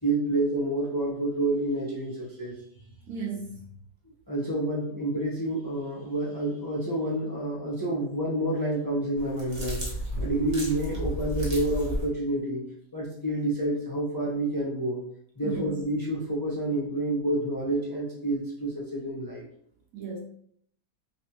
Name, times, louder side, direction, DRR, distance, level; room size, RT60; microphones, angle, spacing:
voice 1, 0.0-2.5 4.3-9.8 10.2-12.6 12.9-15.0 15.4-19.4, right 1 dB, 15° left, -7 dB, 0.8 m, -28 dB
voice 2, 3.1-3.7 15.4-15.9 19.9-20.2, right 4 dB, 65° right, -1 dB, 1.2 m, -35 dB
sound 1, 9.2-12.1, right 1 dB, 30° right, 1.1 m, -33 dB
3.5 x 3.1 x 3.0 m, 0.65 s
omnidirectional pair, 1.7 m